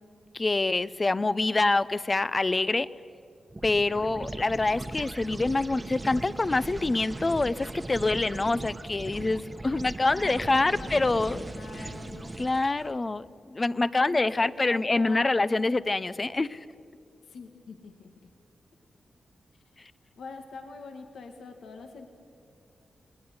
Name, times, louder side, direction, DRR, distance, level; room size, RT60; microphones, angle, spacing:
voice 1, 0.3-2.9 3.6-11.4 11.8-11.9 12.4-16.6, left 2 dB, 25° left, 16 dB, 0.6 m, -26 dB
sound 1, 3.5-13.0, right 2 dB, 20° right, 1.2 m, -39 dB
voice 2, 10.0-12.4 14.0-15.3 17.2-18.3 19.5-19.6 20.2-22.1, left 4 dB, 85° left, 5 dB, 1.9 m, -44 dB
30.0 x 20.5 x 9.6 m, 2.5 s
wide cardioid pair, 125°, 0 cm